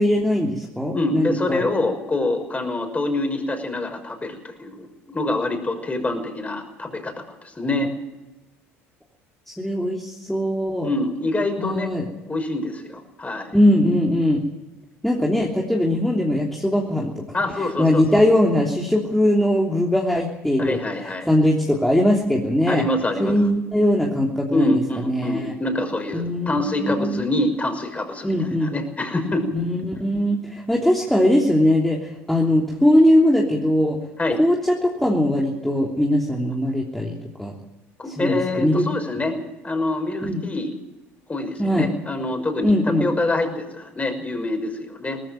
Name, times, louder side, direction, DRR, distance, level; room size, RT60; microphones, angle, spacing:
voice 1, 0.0-1.6 9.5-10.9 11.6-12.1 13.5-14.4 15.0-17.1 17.5-20.8 21.3-22.8 23.2-25.5 26.1-27.3 28.2-28.7 29.5-34.0 34.4-37.1 37.4-37.5 38.1-38.8 39.1-39.2 40.2-40.4 41.6-41.9 42.6-43.1, left 1 dB, 5° left, -2 dB, 3.2 m, -20 dB
voice 2, 0.9-7.1 7.4-7.9 10.8-11.9 12.3-13.5 17.3-18.0 20.6-21.3 22.7-23.4 24.5-29.5 34.2-34.4 38.0-39.4 39.6-40.7 41.3-42.7 43.0-45.2, left 2 dB, 20° left, 5 dB, 6.0 m, -25 dB
19.5 x 15.0 x 9.1 m, 1.0 s
hypercardioid pair, 70°, 7 cm